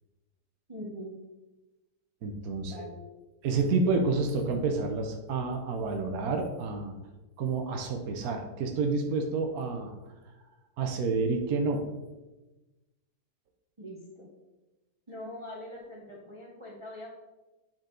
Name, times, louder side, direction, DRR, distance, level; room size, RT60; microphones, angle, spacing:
voice 1, 0.7-1.2 2.6-3.0 13.8-14.3 15.1-17.1, left 1 dB, 20° right, -2 dB, 0.9 m, -42 dB
voice 2, 2.2-2.8 3.4-6.9 7.4-10.0 10.8-11.8, right 3 dB, 65° right, 3 dB, 1.2 m, -29 dB
9.3 x 4.4 x 3.8 m, 1.1 s
omnidirectional pair, 1.8 m